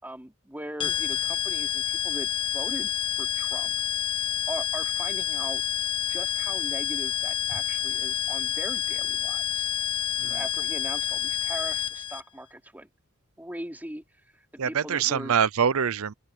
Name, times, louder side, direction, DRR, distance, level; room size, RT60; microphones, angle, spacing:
voice 1, 0.0-2.9 3.2-3.7 4.5-5.6 6.1-9.8 10.2-12.9 13.4-14.0 14.3-15.3, right 1 dB, 10° right, 3.2 m, -40 dB
sound 1, 0.8-12.2, left 10 dB, 25° left, 1.4 m, -28 dB
voice 2, 14.6-16.1, right 7 dB, 70° right, 0.6 m, -25 dB
open air
head